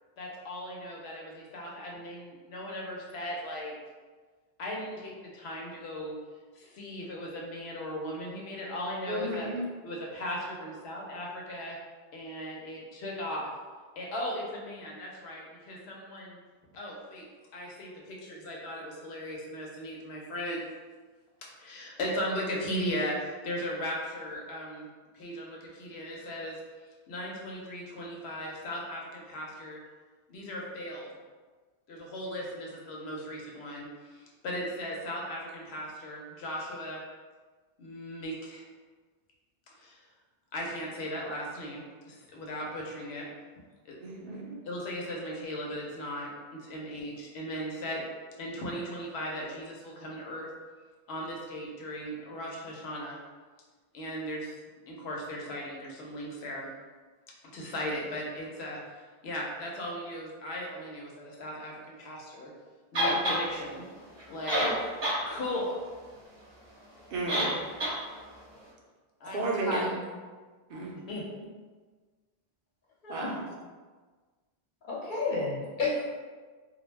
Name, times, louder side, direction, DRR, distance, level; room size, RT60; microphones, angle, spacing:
voice 1, 0.2-3.8 4.6-6.2 6.5-9.5 9.8-11.8 12.1-13.5 14.0-16.4 16.7-17.2 17.5-20.7 21.6-23.2 23.4-24.9 25.1-26.6 27.1-29.8 30.3-31.1 31.9-37.0 37.8-38.6 39.8-40.0 40.5-43.3 43.9-44.0 44.6-48.0 48.4-50.5 51.1-53.2 53.9-54.6 54.9-56.7 57.5-62.5 62.9-63.8 64.3-64.9 65.3-65.8 67.6-67.7 69.2-70.0 71.1-71.3, equal, 90° left, -2 dB, 0.9 m, -37 dB
voice 2, 9.1-9.6 44.0-44.6 67.1-67.5 69.3-70.0 70.7-71.2 73.1-73.4, right 2 dB, 70° right, -2 dB, 0.7 m, -33 dB
sound 1, 62.9-63.4 64.2-64.3 64.5-65.2 65.6-65.7 67.3-67.5 67.8-67.9, equal, 30° right, 0.6 m, -27 dB
voice 3, 74.8-76.1, left 3 dB, 55° left, -5 dB, 0.8 m, -31 dB
2.2 x 2.1 x 3.1 m, 1.4 s
omnidirectional pair, 1.0 m